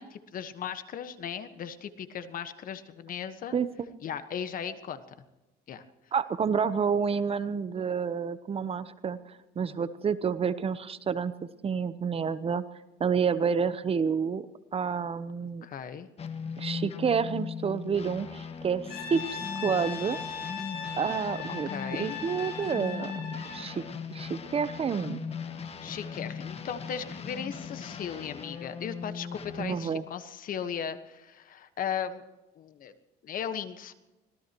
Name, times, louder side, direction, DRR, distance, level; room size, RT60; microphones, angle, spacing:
voice 1, 0.0-3.6 4.0-5.0 5.7-5.8 15.6-16.1 21.7-22.2 25.8-32.2 32.6-32.9 33.2-33.9, left 8 dB, 55° left, 10 dB, 1.4 m, -37 dB
voice 2, 6.1-9.2 9.6-11.3 11.6-12.6 13.0-14.5 14.7-15.7 16.6-19.2 19.6-20.2 21.0-23.1 23.4-23.8 24.1-25.3 29.6-30.0, right 6 dB, 35° right, 14 dB, 0.9 m, -29 dB
sound 1, 16.2-30.0, left 6 dB, 35° left, 1.6 m, -39 dB
Brass instrument, 18.9-23.7, left 5 dB, 70° left, 6.2 m, -38 dB
25.0 x 18.5 x 3.1 m, 1.1 s
cardioid pair, 110°, 17 cm